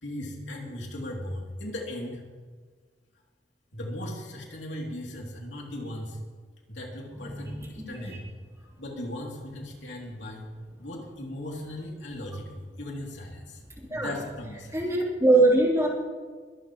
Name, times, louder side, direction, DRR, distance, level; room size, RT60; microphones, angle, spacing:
voice 1, 0.0-2.2 3.7-6.2 6.7-8.3 8.8-10.5 10.8-13.6 13.9-14.8, left 1 dB, 80° left, -1 dB, 3.0 m, -37 dB
voice 2, 14.7-15.9, right 2 dB, 15° right, -3 dB, 3.5 m, -22 dB
23.0 x 12.0 x 3.1 m, 1.5 s
head